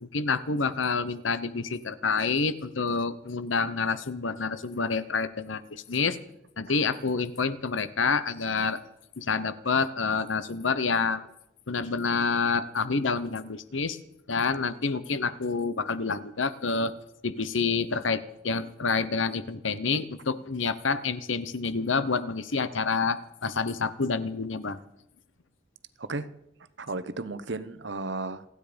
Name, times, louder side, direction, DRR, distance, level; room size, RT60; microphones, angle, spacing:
voice 1, 0.0-6.2 6.6-8.8 9.2-11.3 11.7-14.0 14.3-16.9 17.2-24.8, left 4 dB, 85° left, 14 dB, 1.0 m, -28 dB
voice 2, 26.0-26.3 26.8-28.4, right 3 dB, 70° right, 14 dB, 1.0 m, -34 dB
28.5 x 9.8 x 5.2 m, 0.84 s
head